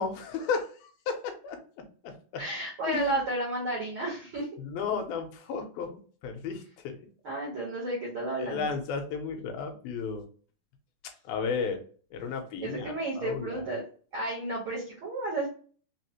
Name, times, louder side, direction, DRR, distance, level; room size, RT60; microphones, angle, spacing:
voice 1, 0.0-1.6 2.0-2.4 2.9-3.2 4.6-5.9 6.2-7.0 8.4-10.3 11.3-11.8 12.1-13.6, left 5 dB, 80° left, 4 dB, 2.5 m, -33 dB
voice 2, 2.4-4.5 7.2-8.7 12.6-13.8 14.1-15.5, right 2 dB, 85° right, -4 dB, 1.1 m, -32 dB
5.6 x 2.0 x 2.8 m, 0.41 s
omnidirectional pair, 4.2 m